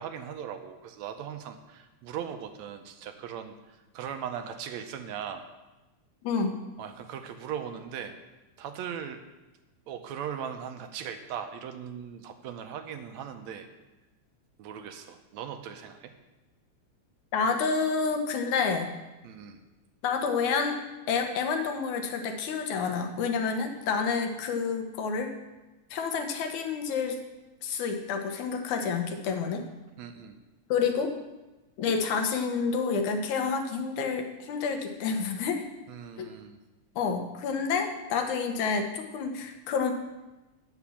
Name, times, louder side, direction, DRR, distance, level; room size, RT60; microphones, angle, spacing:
voice 1, 0.0-5.4 6.8-8.2 8.6-9.2 9.9-13.7 14.6-16.1 19.2-19.6 30.0-30.4 35.9-36.6, right 8 dB, 80° right, 7 dB, 1.8 m, -39 dB
voice 2, 6.2-6.6 17.3-18.9 20.0-20.8 21.1-25.3 25.9-27.2 27.6-29.7 30.7-31.1 31.8-35.6 36.2-36.3 37.0-39.9, left 5 dB, 80° left, 5 dB, 2.4 m, -29 dB
9.8 x 5.9 x 7.1 m, 1.1 s
omnidirectional pair, 3.4 m